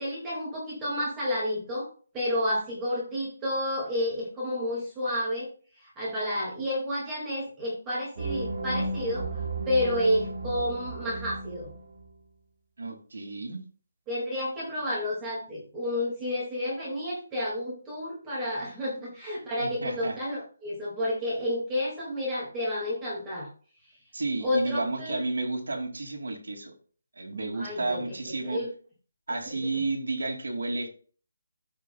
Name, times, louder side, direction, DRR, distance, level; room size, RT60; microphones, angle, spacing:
voice 1, 0.0-1.9 2.1-9.4 9.7-11.7 14.1-23.5 24.4-25.2 27.5-28.0 28.4-28.7 29.7-29.8, left 1 dB, 10° right, -6 dB, 2.1 m, -30 dB
sound 1, 8.2-12.1, right 2 dB, 45° right, 3.3 m, -34 dB
voice 2, 12.8-13.6 19.6-20.2 24.1-26.7 27.2-28.6 29.3-30.9, right 2 dB, 85° right, 3 dB, 2.5 m, -32 dB
14.0 x 4.9 x 2.3 m, 0.41 s
hypercardioid pair, 175°, 0 cm